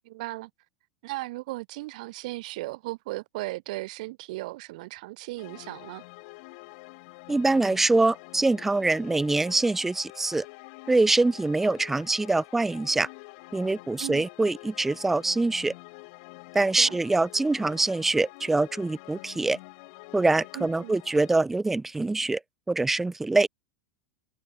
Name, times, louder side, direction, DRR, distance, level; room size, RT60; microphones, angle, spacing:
voice 1, 0.0-0.5 1.0-6.0 14.0-14.3 16.8-17.0 20.5-20.9, right 20 dB, 60° right, 7.9 m, -36 dB
sound 1, 5.4-21.4, left 29 dB, 50° left, 6.3 m, -47 dB
voice 2, 7.3-10.5 10.9-13.1 13.5-15.7 16.5-19.6 20.1-22.4 22.7-23.5, right 2 dB, 5° right, 0.6 m, -24 dB
supercardioid pair, 165°, 5 cm